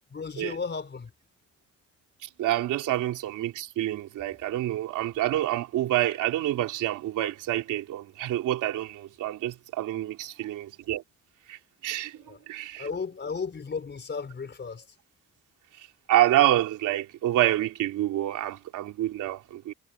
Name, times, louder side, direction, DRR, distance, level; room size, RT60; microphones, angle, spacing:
voice 1, 0.1-1.1 12.2-12.4 12.8-14.8, left 5 dB, 35° left, 4.9 m, -34 dB
voice 2, 2.4-11.0 11.5-12.2 12.5-12.9 16.1-19.7, right 13 dB, 85° right, 3.4 m, -27 dB
cardioid pair, 90°, 30 cm